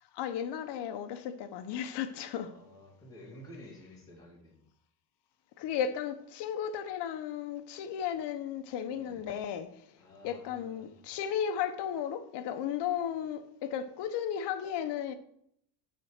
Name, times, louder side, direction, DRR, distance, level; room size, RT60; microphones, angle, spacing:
voice 1, 0.1-2.5 5.6-10.0 10.2-15.1, left 9 dB, 55° left, 1.1 m, -35 dB
voice 2, 2.5-4.6 8.9-9.2 10.0-10.9, left 1 dB, 10° left, 2.9 m, -52 dB
9.3 x 4.5 x 6.6 m
cardioid pair, 135°, 48 cm